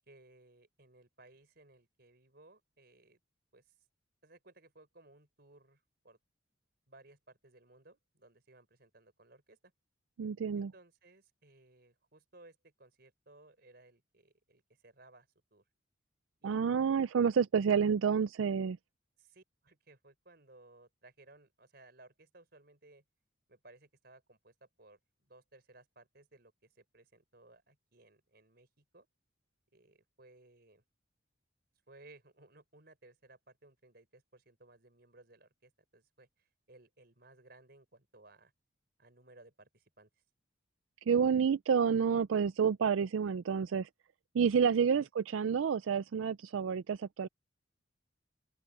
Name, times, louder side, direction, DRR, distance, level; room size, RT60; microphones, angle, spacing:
voice 1, 0.1-3.2 3.5-3.7 4.2-6.2 6.9-9.7 10.5-15.6 16.4-17.1 19.2-23.0 23.5-29.1 29.7-30.8 31.9-38.5 39.0-40.1 45.0-45.1, right 2 dB, 55° right, 4.8 m, -61 dB
voice 2, 10.2-10.7 16.4-18.8 41.1-43.9 44.3-47.3, right 6 dB, 85° right, 0.4 m, -29 dB
open air
head